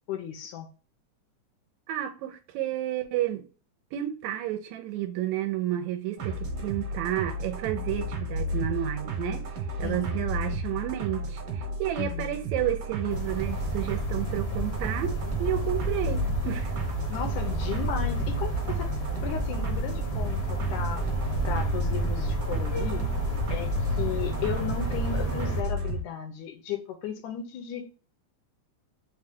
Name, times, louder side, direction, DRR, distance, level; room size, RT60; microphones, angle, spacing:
voice 1, 0.1-0.7 9.8-10.2 12.0-12.4 17.1-18.9 19.2-21.1 21.4-23.1 23.5-27.8, left 8 dB, 85° left, 2.3 m, -35 dB
voice 2, 1.9-3.5 3.9-9.5 9.8-16.7, right 12 dB, 80° right, 1.9 m, -31 dB
sound 1, 6.2-26.0, right 1 dB, 60° right, 1.8 m, -33 dB
sound 2, 13.1-25.6, right 2 dB, 60° left, 0.9 m, -31 dB
5.3 x 2.2 x 3.5 m
omnidirectional pair, 3.4 m